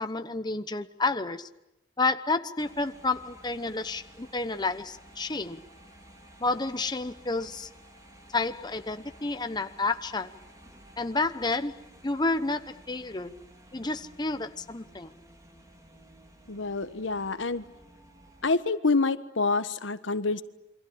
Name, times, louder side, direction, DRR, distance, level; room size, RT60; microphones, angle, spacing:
voice 1, 0.0-1.5 2.0-5.6 6.4-7.7 8.3-10.3 11.0-13.3 13.7-15.1, left 3 dB, 20° left, 10 dB, 0.9 m, -30 dB
sound 1, 2.6-18.5, right 1 dB, 20° right, 4.1 m, -54 dB
voice 2, 16.5-17.6 18.4-20.4, left 3 dB, 85° left, 11 dB, 1.4 m, -27 dB
28.5 x 24.0 x 8.6 m, 0.89 s
head